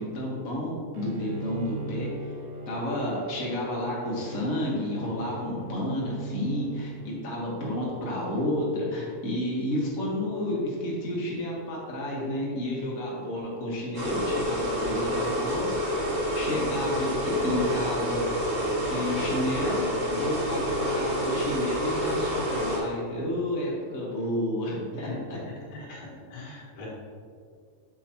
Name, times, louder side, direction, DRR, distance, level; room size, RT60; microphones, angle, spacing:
voice 1, 0.0-2.3 2.7-15.7 16.3-18.2 18.9-25.4, left 1 dB, 45° left, -4 dB, 1.1 m, -31 dB
Bowed string instrument, 0.9-7.6, right 3 dB, 75° right, 1.6 m, -39 dB
sound 1, 13.9-22.8, equal, 45° right, 2.2 m, -28 dB
voice 2, 25.7-26.9, left 3 dB, 80° left, -5 dB, 3.0 m, -41 dB
8.3 x 4.9 x 2.8 m, 2.2 s
omnidirectional pair, 3.3 m